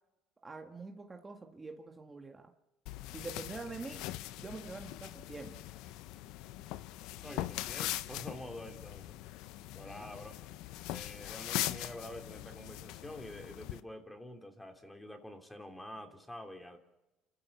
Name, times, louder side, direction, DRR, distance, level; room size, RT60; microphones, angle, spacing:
voice 1, 0.4-2.5 3.1-4.1 4.4-5.6 10.0-10.1, right 3 dB, 20° right, 3 dB, 1.9 m, -45 dB
sound 1, 2.9-13.8, left 15 dB, 75° left, 0.8 m, -41 dB
voice 2, 7.2-9.2 9.7-10.6 10.9-16.8, left 1 dB, 10° left, 5 dB, 2.9 m, -47 dB
29.0 x 14.0 x 7.3 m, 1.0 s
supercardioid pair, 90°, 0 cm